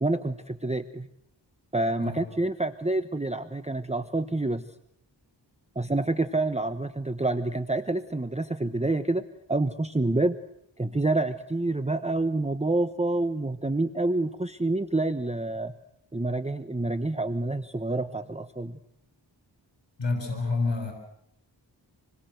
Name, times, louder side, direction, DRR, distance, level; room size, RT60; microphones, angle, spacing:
voice 1, 0.0-1.1 1.7-4.6 5.7-10.4 10.8-15.7 16.1-18.8, right 2 dB, 15° right, 9 dB, 1.1 m, -28 dB
voice 2, 20.0-20.9, left 3 dB, 75° left, 3 dB, 6.5 m, -28 dB
28.0 x 22.0 x 8.0 m, 0.75 s
wide cardioid pair, 65°, 44 cm